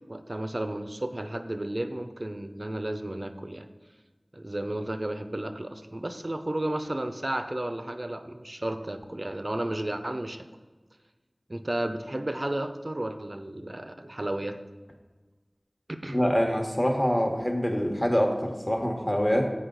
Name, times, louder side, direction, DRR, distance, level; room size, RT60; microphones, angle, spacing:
voice 1, 0.1-3.7 4.3-10.5 11.5-14.6 15.9-16.2, right 1 dB, 45° right, 9 dB, 0.5 m, -33 dB
voice 2, 16.1-19.5, equal, 20° left, 3 dB, 1.1 m, -25 dB
8.0 x 5.3 x 3.9 m, 1.3 s
wide cardioid pair, 45°, 0 cm